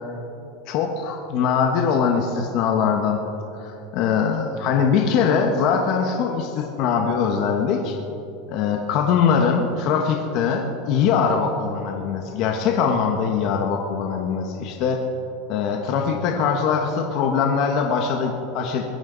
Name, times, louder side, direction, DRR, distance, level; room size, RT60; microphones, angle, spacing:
voice 1, 0.7-3.2 3.6-7.9 8.5-15.0 15.5-18.8, left 6 dB, 50° left, 2 dB, 1.3 m, -22 dB
22.0 x 16.0 x 4.0 m, 2.9 s
supercardioid pair, 150°, 0 cm